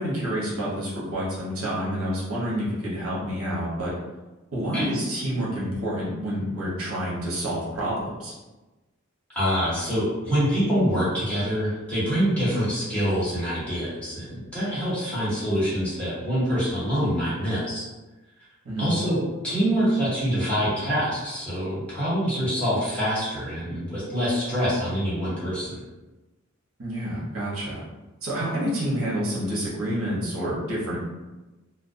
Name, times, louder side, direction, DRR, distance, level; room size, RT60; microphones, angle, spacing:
voice 1, 0.0-3.9 4.5-8.3 18.6-18.9 26.8-27.8 28.2-31.0, equal, 80° right, -6 dB, 0.9 m, -28 dB
voice 2, 9.3-17.8 18.8-19.2 19.4-25.8, equal, 5° left, -11 dB, 1.1 m, -25 dB
2.4 x 2.1 x 2.5 m, 1.1 s
head